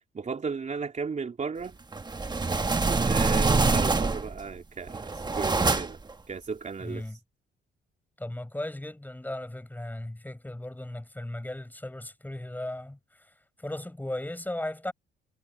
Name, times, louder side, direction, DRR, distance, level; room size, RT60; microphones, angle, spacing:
voice 1, 0.1-1.8 2.9-6.0 6.3-7.0, right 5 dB, 35° right, 3.3 m, -35 dB
sound 1, 1.9-4.4 4.9-6.1, right 3 dB, 20° right, 1.2 m, -25 dB
voice 2, 6.8-7.2 8.2-13.3 13.6-14.9, left 1 dB, 10° left, 6.9 m, -36 dB
cardioid pair, 90°, 20 cm